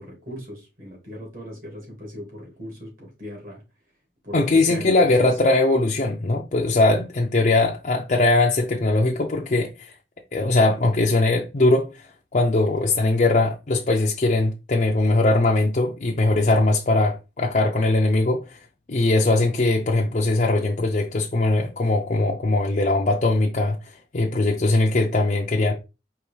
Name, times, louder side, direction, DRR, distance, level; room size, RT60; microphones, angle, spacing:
voice 1, 0.0-3.6 4.2-5.3, equal, 50° right, 2.3 m, -37 dB
voice 2, 4.3-9.9 10.3-11.8 12.3-18.6 18.9-23.8 24.1-25.7, left 2 dB, 45° left, 0.5 m, -20 dB
4.7 x 3.1 x 3.2 m
head